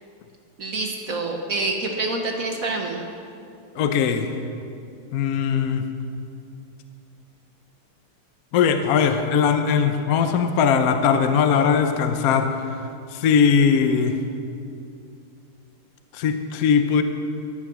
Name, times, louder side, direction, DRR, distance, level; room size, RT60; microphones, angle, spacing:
voice 1, 0.6-3.0, right 2 dB, 50° right, 2 dB, 1.2 m, -27 dB
voice 2, 3.8-4.3 5.1-5.9 8.5-12.7 13.1-14.2 16.1-17.0, left 6 dB, 70° left, 7 dB, 0.8 m, -20 dB
14.0 x 9.8 x 6.1 m, 2.5 s
omnidirectional pair, 2.4 m